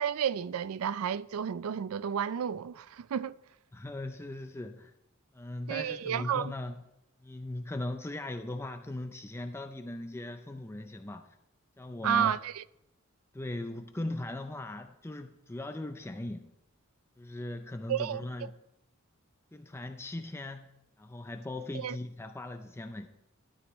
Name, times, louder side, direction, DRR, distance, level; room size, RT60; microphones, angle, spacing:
voice 1, 0.0-3.4 5.7-6.5 12.0-12.6 17.9-18.5 21.7-22.0, right 8 dB, 90° right, 0.4 m, -31 dB
voice 2, 3.7-4.9 5.3-6.8 7.2-11.3 11.8-12.3 13.3-16.5 17.2-18.5 19.5-20.7 21.0-23.1, left 1 dB, 10° left, 0.4 m, -39 dB
12.5 x 12.5 x 3.1 m
head